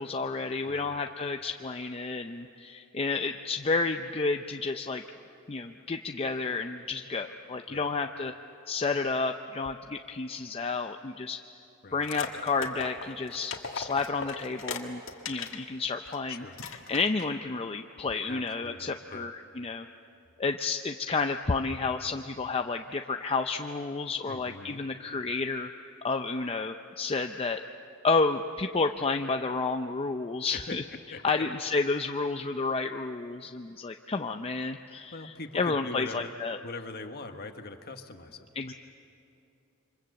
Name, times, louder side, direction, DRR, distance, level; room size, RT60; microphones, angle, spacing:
voice 1, 0.0-5.0 5.5-8.3 8.7-11.4 11.9-15.0 15.3-16.4 16.9-19.9 20.4-25.7 26.0-27.6 28.0-30.8 31.2-36.6 38.6-38.7, left 4 dB, 30° left, 5 dB, 0.6 m, -31 dB
voice 2, 0.7-1.0 7.7-7.9 11.8-12.1 16.3-16.6 18.3-19.3 24.3-24.9 30.5-30.7 31.1-31.4 35.1-36.3 36.6-38.5, left 3 dB, 50° left, 6 dB, 1.4 m, -42 dB
sound 1, 12.0-15.6 16.1-16.2 16.5-17.3, left 5 dB, 65° left, 1.9 m, -38 dB
28.0 x 25.0 x 7.8 m, 2.7 s
head